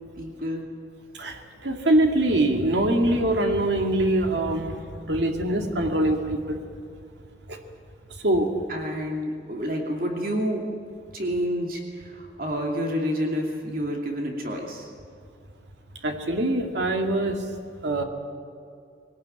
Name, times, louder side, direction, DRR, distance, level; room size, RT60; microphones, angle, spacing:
voice 1, 0.2-0.7 8.7-10.6 11.1-14.9, equal, 50° right, 1 dB, 2.6 m, -29 dB
voice 2, 1.1-6.6 7.5-7.6 8.2-8.5 16.0-17.4 17.8-18.0, right 1 dB, 75° right, 3 dB, 2.3 m, -23 dB
21.5 x 18.5 x 9.2 m, 2.4 s
head